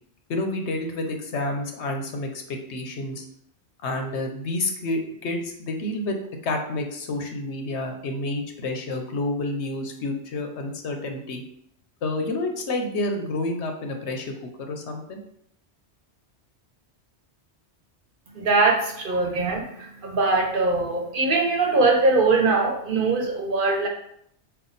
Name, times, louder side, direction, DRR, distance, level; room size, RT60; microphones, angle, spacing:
voice 1, 0.3-3.2 3.8-6.2 6.4-11.4 12.0-14.3 14.6-15.2, left 2 dB, 80° left, 4 dB, 1.0 m, -29 dB
voice 2, 18.3-23.9, right 3 dB, 55° right, 1 dB, 0.9 m, -22 dB
5.7 x 2.3 x 4.0 m, 0.70 s
omnidirectional pair, 1.1 m